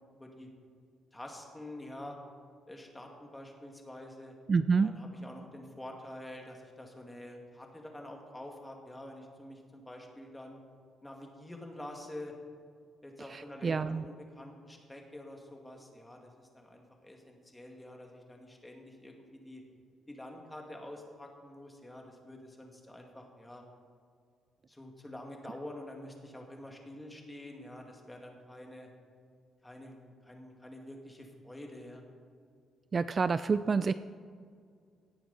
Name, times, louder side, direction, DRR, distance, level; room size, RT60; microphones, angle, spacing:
voice 1, 0.2-0.5 1.1-2.2 2.7-4.3 4.8-10.6 11.0-12.3 13.0-19.6 20.1-23.6 24.7-28.9 29.6-32.0, left 1 dB, 10° left, 2 dB, 2.1 m, -47 dB
voice 2, 4.5-4.9 13.3-14.0 32.9-33.9, right 5 dB, 40° right, 13 dB, 0.3 m, -28 dB
17.0 x 9.1 x 4.2 m, 2.2 s
cardioid pair, 90°, 0 cm